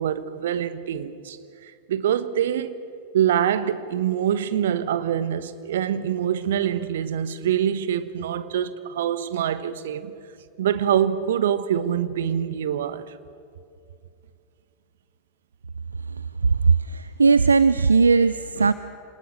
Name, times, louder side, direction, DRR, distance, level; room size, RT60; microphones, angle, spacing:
voice 1, 0.0-2.8 3.1-10.1 10.6-13.2 18.6-18.7, right 9 dB, 60° right, 1.1 m, -25 dB
voice 2, 16.9-18.7, right 4 dB, 75° right, 0.5 m, -18 dB
28.0 x 19.0 x 6.8 m
figure-of-eight pair, 90°, 0 cm